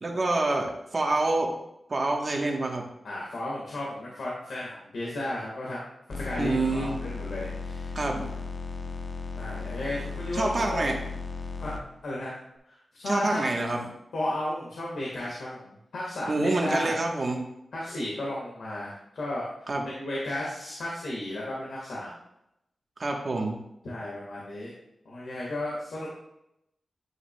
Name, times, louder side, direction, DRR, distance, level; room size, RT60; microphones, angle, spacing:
voice 1, 0.0-1.5 1.9-2.9 6.4-6.9 7.9-8.3 10.3-11.0 13.1-13.8 16.3-17.5 19.7-19.9 23.0-23.6, right 2 dB, 40° right, 1 dB, 1.0 m, -27 dB
voice 2, 3.0-8.4 9.4-10.9 11.6-11.7 12.0-12.3 12.7-13.6 14.1-17.0 17.7-19.5 19.8-22.1 23.8-24.7 25.0-26.1, left 1 dB, 85° left, -5 dB, 1.4 m, -34 dB
sound 1, 6.1-11.8, left 4 dB, 50° left, 0.6 m, -36 dB
9.4 x 5.7 x 2.2 m, 0.82 s
wide cardioid pair, 145°, 0 cm